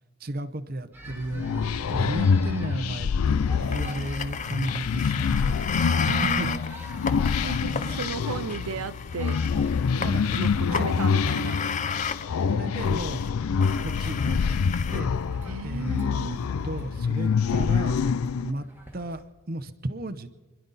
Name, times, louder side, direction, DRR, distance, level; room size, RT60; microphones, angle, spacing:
voice 1, 0.2-6.5 7.4-8.1 8.8-8.9 10.0-10.9 12.5-13.2 13.8-15.1 15.6-16.1 16.6-18.0 18.4-18.7 18.9-19.2 19.5-20.3, right 1 dB, 45° right, 12 dB, 0.8 m, -34 dB
sound 1, 0.9-19.2, right 1 dB, 10° right, 1.5 m, -49 dB
sound 2, 1.1-18.5, left 6 dB, 90° left, 0.4 m, -26 dB
sound 3, 3.6-12.3 12.8-13.3 13.6-15.0, left 6 dB, 35° left, 0.6 m, -34 dB
voice 2, 5.7-6.6 7.4-9.4 10.3-11.7 15.4-16.4, right 5 dB, 85° right, 12 dB, 0.5 m, -35 dB
28.5 x 11.5 x 4.1 m, 1.3 s
head